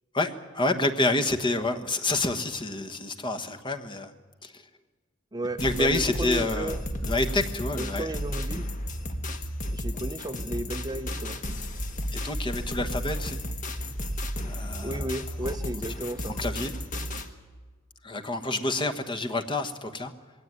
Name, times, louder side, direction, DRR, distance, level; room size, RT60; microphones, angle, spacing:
voice 1, 0.1-4.1 4.4-4.6 5.6-8.1 12.1-13.4 14.4-15.1 15.4-15.5 16.3-16.7 18.0-20.1, left 2 dB, 25° left, 6 dB, 1.3 m, -28 dB
voice 2, 5.3-6.8 7.8-8.6 9.7-11.4 14.8-16.4, right 1 dB, 20° right, 8 dB, 0.6 m, -34 dB
sound 1, 5.6-17.3, equal, 40° left, 1.4 m, -33 dB
20.5 x 17.5 x 9.5 m, 1.4 s
head